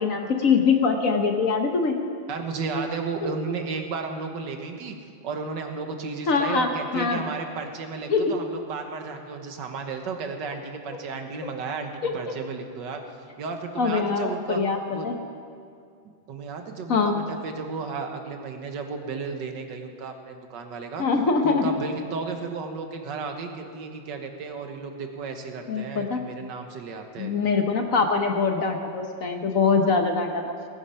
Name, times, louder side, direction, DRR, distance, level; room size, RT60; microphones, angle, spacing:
voice 1, 0.0-2.0 6.3-7.2 8.1-8.4 12.0-12.3 13.8-15.2 16.9-17.2 21.0-21.7 25.7-26.2 27.2-30.4, left 4 dB, 50° left, 4 dB, 1.2 m, -23 dB
voice 2, 2.3-5.0 5.2-13.0 13.4-14.6 14.9-15.1 16.3-21.0 21.4-27.3, right 4 dB, 70° right, 5 dB, 1.8 m, -33 dB
18.0 x 10.0 x 5.7 m, 2.3 s
omnidirectional pair, 2.1 m